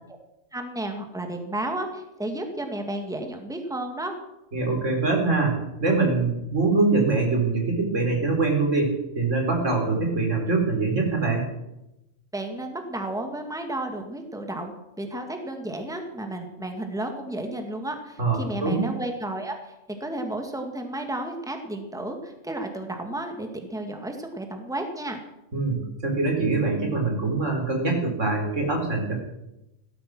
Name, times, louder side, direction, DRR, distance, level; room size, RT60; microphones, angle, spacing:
voice 1, 0.5-4.2 12.3-14.7 15.0-25.2, right 1 dB, 5° right, 4 dB, 2.1 m, -32 dB
voice 2, 4.5-11.4 18.2-18.8 25.5-29.1, right 3 dB, 80° right, 1 dB, 4.6 m, -24 dB
17.5 x 13.5 x 6.2 m, 0.90 s
omnidirectional pair, 1.3 m